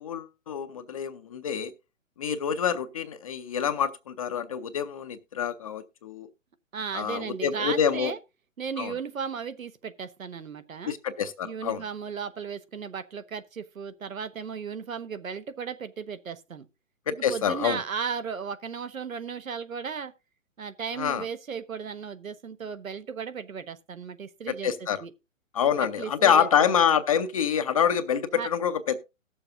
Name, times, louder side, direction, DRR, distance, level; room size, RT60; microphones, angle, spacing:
voice 1, 0.0-1.7 2.2-6.3 6.9-8.1 8.8-8.9 10.9-11.8 17.1-17.8 21.0-21.2 24.6-25.0 25.5-29.0, left 8 dB, 30° left, 0.5 m, -26 dB
voice 2, 6.7-8.2 8.6-11.0 11.4-16.7 17.1-20.1 20.6-24.7 25.0-25.1 25.8-26.5 28.4-28.5, right 6 dB, 85° right, 1.1 m, -35 dB
18.5 x 7.0 x 2.5 m
figure-of-eight pair, 135°, 40 cm